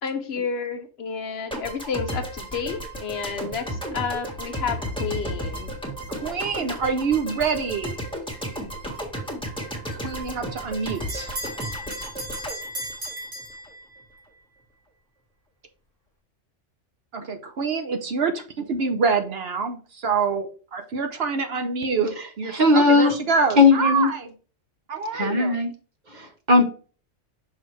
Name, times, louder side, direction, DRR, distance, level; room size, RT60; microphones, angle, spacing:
voice 1, 0.0-5.7, left 6 dB, 60° left, 0.9 m, -30 dB
sound 1, 1.5-13.7, equal, 5° left, 1.4 m, -33 dB
voice 2, 6.1-8.0 10.0-11.3 17.1-24.3 24.9-25.6, right 5 dB, 55° right, 0.9 m, -26 dB
Bell, 10.1-14.2, equal, 80° right, 2.6 m, -36 dB
voice 3, 22.5-23.1 23.6-24.1 25.1-25.7 26.1-26.6, left 3 dB, 40° right, 1.1 m, -17 dB
6.2 x 4.7 x 3.2 m
omnidirectional pair, 1.3 m